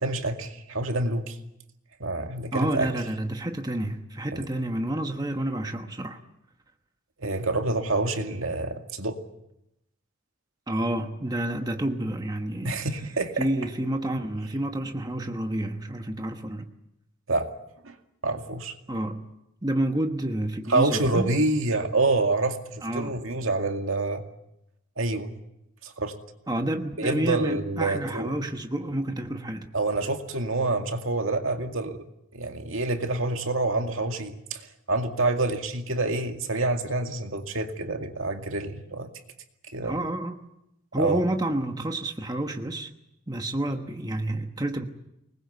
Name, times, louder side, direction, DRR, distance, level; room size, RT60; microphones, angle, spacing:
voice 1, 0.0-1.4 2.0-2.9 4.3-4.5 7.2-9.2 12.6-13.5 17.3-17.5 17.8-17.9 18.2-18.8 20.7-24.2 25.0-25.3 25.8-26.1 27.0-28.3 29.7-32.0 32.3-39.1 39.7-40.1 41.0-41.2, right 2 dB, 70° right, 5 dB, 2.2 m, -27 dB
voice 2, 2.5-6.2 10.7-12.8 13.4-16.7 18.9-19.3 19.6-21.3 22.8-23.2 26.5-29.7 39.8-40.4 40.9-42.9 43.3-44.8, right 1 dB, 20° right, 5 dB, 1.2 m, -29 dB
24.5 x 20.5 x 8.1 m, 0.85 s
head